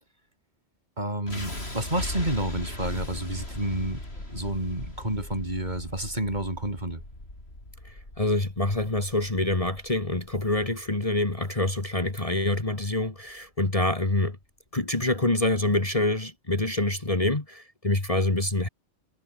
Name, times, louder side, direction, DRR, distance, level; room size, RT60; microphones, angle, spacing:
voice 1, 1.0-4.0 4.3-7.0, right 1 dB, 35° right, 5.8 m, -30 dB
sound 1, 1.3-13.3, left 1 dB, 55° left, 7.7 m, -39 dB
voice 2, 7.9-14.4 14.7-18.7, left 2 dB, 30° left, 2.3 m, -26 dB
omnidirectional pair, 1.3 m